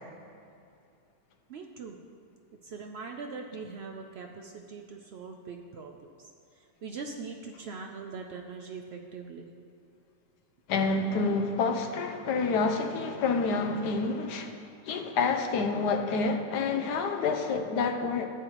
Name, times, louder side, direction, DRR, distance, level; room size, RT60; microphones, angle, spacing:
voice 1, 1.5-2.0 2.6-6.3 6.8-9.4, right 4 dB, 85° right, 3 dB, 0.5 m, -41 dB
voice 2, 10.7-14.5 14.9-18.3, left 4 dB, 85° left, 5 dB, 1.3 m, -28 dB
13.5 x 8.0 x 3.0 m, 2.5 s
omnidirectional pair, 1.7 m